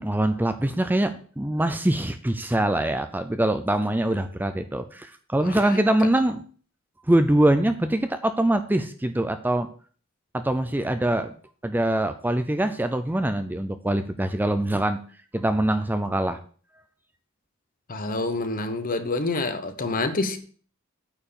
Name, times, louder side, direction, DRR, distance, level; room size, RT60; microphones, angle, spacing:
voice 1, 0.0-6.4 7.1-9.7 10.3-11.3 11.6-15.0 15.3-16.4, right 1 dB, 10° right, 0.5 m, -23 dB
voice 2, 17.9-20.4, left 2 dB, 40° left, 1.0 m, -27 dB
8.9 x 4.7 x 6.9 m
head